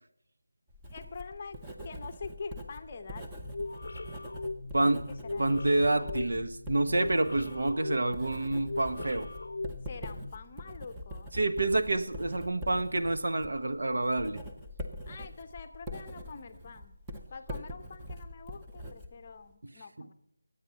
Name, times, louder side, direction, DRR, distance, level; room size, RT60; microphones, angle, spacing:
Writing, 0.7-19.5, left 1 dB, 5° right, 0.8 m, -44 dB
voice 1, 0.9-1.6 1.8-3.5 5.2-5.8 9.9-11.3 15.1-16.9 17.3-20.1, left 4 dB, 25° left, 7 dB, 0.8 m, -45 dB
sound 1, 3.4-10.3, left 2 dB, 55° left, 0.6 m, -40 dB
voice 2, 4.7-5.0 5.4-9.3 11.3-14.4 19.6-19.7 20.0-20.1, right 2 dB, 60° right, 8 dB, 1.3 m, -28 dB
22.5 x 8.8 x 5.6 m, 0.80 s
figure-of-eight pair, 175°, 0 cm